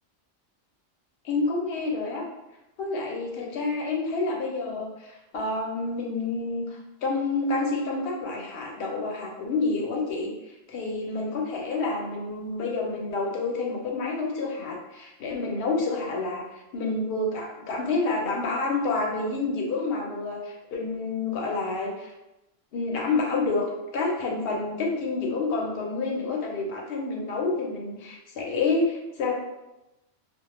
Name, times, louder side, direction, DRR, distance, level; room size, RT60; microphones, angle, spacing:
voice 1, 1.2-2.2 2.8-10.3 10.7-22.1 22.7-23.7 23.9-29.3, left 3 dB, 65° left, -1 dB, 0.7 m, -28 dB
2.2 x 2.0 x 3.0 m, 0.96 s
omnidirectional pair, 1.3 m